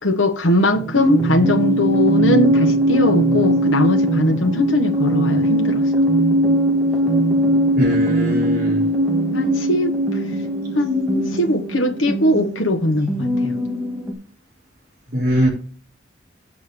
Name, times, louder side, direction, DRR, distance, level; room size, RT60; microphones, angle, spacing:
voice 1, 0.0-5.9 7.4-7.5 9.3-10.2 10.7-13.5, left 1 dB, 90° left, 1.2 m, -20 dB
sound 1, 0.7-14.1, right 1 dB, ahead, 2.0 m, -20 dB
voice 2, 7.8-8.8 15.1-15.5, equal, 45° right, 4.8 m, -21 dB
8.5 x 5.0 x 6.8 m
head